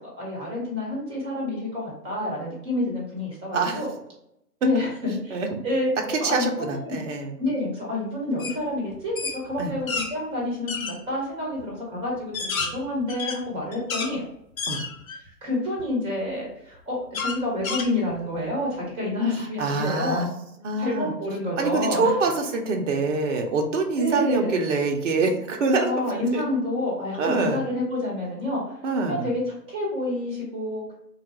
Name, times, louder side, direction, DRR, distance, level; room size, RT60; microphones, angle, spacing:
voice 1, 0.2-3.9 4.6-5.4 5.6-5.9 6.2-7.0 7.4-14.2 15.2-20.3 20.8-22.1 24.0-24.6 25.8-28.8 29.1-29.4 29.7-30.9, left 1 dB, 10° right, -2 dB, 0.9 m, -28 dB
voice 2, 6.1-7.4 9.6-9.7 14.7-14.8 19.6-20.3 20.6-21.1 21.6-26.4 27.2-27.7 28.8-29.3, right 3 dB, 50° right, 3 dB, 0.6 m, -25 dB
sound 1, 8.4-8.6 8.9-10.1 10.7-11.0 11.6-11.7 12.2-14.1 14.6-15.3 15.8-15.9 17.1-18.4, left 4 dB, 55° left, 0.7 m, -30 dB
3.6 x 2.3 x 2.8 m, 0.80 s
figure-of-eight pair, 120°, 49 cm